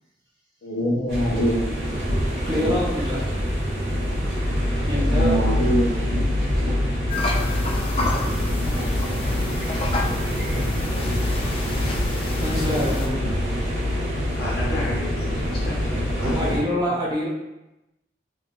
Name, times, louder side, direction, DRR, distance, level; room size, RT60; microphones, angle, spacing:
voice 1, 0.6-1.7 2.5-2.7 5.1-6.1, equal, 90° left, -3 dB, 0.8 m, -24 dB
sound 1, 1.1-16.6, left 1 dB, 85° right, 1.2 m, -25 dB
voice 2, 2.5-3.3 4.9-5.5 12.4-13.3 16.3-17.3, equal, 20° right, -4 dB, 0.5 m, -26 dB
sound 2, 7.1-13.1, left 2 dB, 30° left, 0.3 m, -30 dB
voice 3, 14.4-17.0, left 1 dB, 60° left, -5 dB, 1.0 m, -33 dB
3.5 x 2.6 x 2.4 m, 0.97 s
head